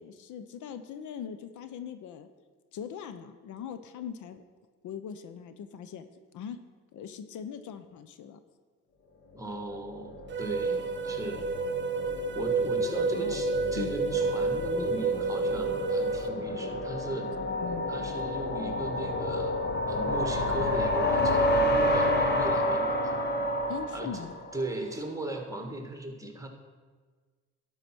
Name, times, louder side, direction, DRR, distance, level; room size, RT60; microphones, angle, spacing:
voice 1, 0.0-2.3 2.7-4.4 4.8-6.1 6.3-6.6 6.9-8.4 13.1-13.4 13.7-13.9 17.6-17.8 23.7-24.3, left 7 dB, 75° left, 10 dB, 0.7 m, -40 dB
voice 2, 9.3-11.5 12.3-17.3 17.9-19.5 19.9-23.1 23.9-24.1 24.5-26.5, right 2 dB, 10° right, 3 dB, 1.5 m, -37 dB
sound 1, 9.6-24.8, left 1 dB, 35° left, 1.1 m, -30 dB
sound 2, 10.3-16.3, right 4 dB, 40° right, 0.8 m, -30 dB
11.5 x 4.9 x 6.0 m, 1.4 s
cardioid pair, 90°, 30 cm